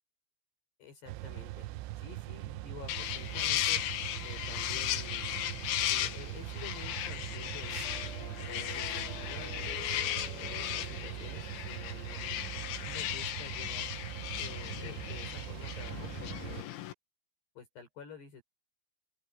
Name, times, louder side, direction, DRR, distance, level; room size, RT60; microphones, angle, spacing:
voice 1, 0.8-1.7 2.0-3.8 4.2-5.3 5.9-7.8 8.4-9.7 10.0-12.4 12.7-13.9 14.4-16.7 17.6-18.4, left 6 dB, 60° left, 8.0 m, -50 dB
sound 1, 1.1-16.6, right 17 dB, 90° right, 3.1 m, -42 dB
sound 2, 2.9-16.9, left 12 dB, 90° left, 3.9 m, -36 dB
sound 3, 7.8-13.2, left 4 dB, 20° left, 7.0 m, -50 dB
open air
omnidirectional pair, 5.4 m